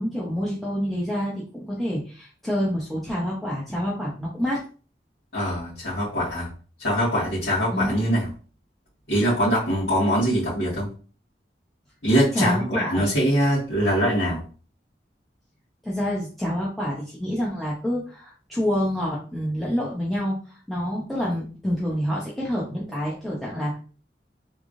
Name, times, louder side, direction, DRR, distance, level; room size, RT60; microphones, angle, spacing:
voice 1, 0.0-4.6 7.7-7.9 12.3-13.0 15.8-23.8, equal, ahead, -6 dB, 0.7 m, -27 dB
voice 2, 5.3-6.5 6.8-8.3 9.1-10.9 12.0-14.4, equal, 75° left, -13 dB, 2.0 m, -23 dB
3.6 x 3.4 x 2.5 m, 0.38 s
head